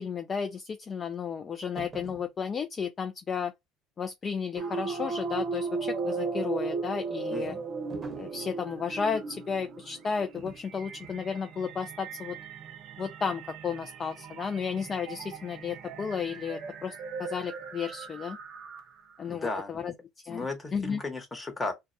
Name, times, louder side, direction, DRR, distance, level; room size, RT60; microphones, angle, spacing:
voice 1, 0.0-3.5 4.0-7.6 8.2-12.4 13.0-18.4 19.2-19.9 20.3-20.5 20.7-21.0, left 6 dB, 40° left, 0.4 m, -33 dB
sound 1, 1.7-2.3 7.9-8.4 10.3-10.7 11.0-11.3, right 5 dB, 30° right, 0.8 m, -45 dB
sound 2, 4.6-19.1, right 4 dB, 55° right, 0.6 m, -37 dB
voice 2, 7.3-7.6 19.3-19.8 20.2-21.7, left 3 dB, 20° left, 1.0 m, -35 dB
2.2 x 2.2 x 2.6 m
hypercardioid pair, 75°, 0 cm